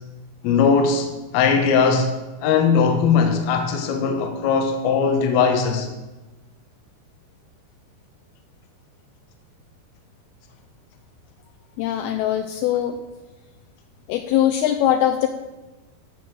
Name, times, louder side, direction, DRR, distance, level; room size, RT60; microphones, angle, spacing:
voice 1, 0.4-1.1 1.3-2.1 2.4-5.9, left 5 dB, 65° left, 3 dB, 2.7 m, -19 dB
voice 2, 11.8-13.0 14.1-15.3, left 11 dB, 85° left, 7 dB, 2.2 m, -21 dB
14.0 x 5.8 x 7.6 m, 1.1 s
omnidirectional pair, 5.2 m